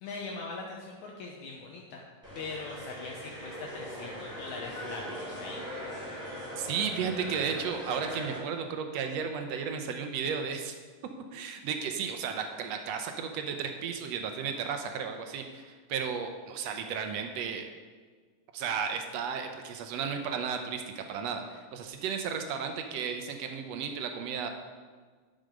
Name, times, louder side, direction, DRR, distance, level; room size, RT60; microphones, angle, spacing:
voice 1, 0.0-2.0 2.4-5.6, left 3 dB, 70° left, -1 dB, 2.2 m, -41 dB
sound 1, 2.2-8.4, equal, ahead, 3.2 m, -40 dB
voice 2, 6.6-10.8 11.3-17.7 18.5-24.5, right 6 dB, 70° right, 5 dB, 1.6 m, -34 dB
11.0 x 6.7 x 5.1 m, 1.5 s
omnidirectional pair, 3.6 m